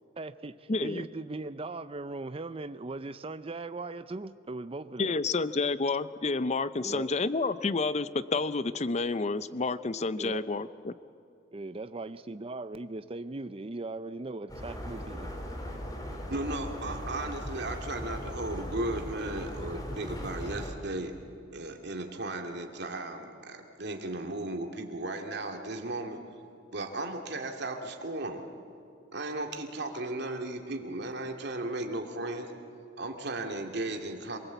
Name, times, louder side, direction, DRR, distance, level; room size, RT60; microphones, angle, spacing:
voice 1, 0.2-5.2 6.8-7.1 10.2-10.5 11.5-15.3, right 2 dB, 30° right, 12 dB, 0.6 m, -39 dB
voice 2, 0.7-1.1 5.0-10.9, left 3 dB, 35° left, 14 dB, 0.6 m, -29 dB
sound 1, 14.5-20.7, equal, 20° left, 3.1 m, -38 dB
voice 3, 16.3-21.1 21.5-26.2 26.7-28.5 29.1-32.5 33.0-34.4, right 2 dB, 65° right, 3 dB, 2.3 m, -35 dB
26.5 x 20.0 x 8.1 m, 2.5 s
head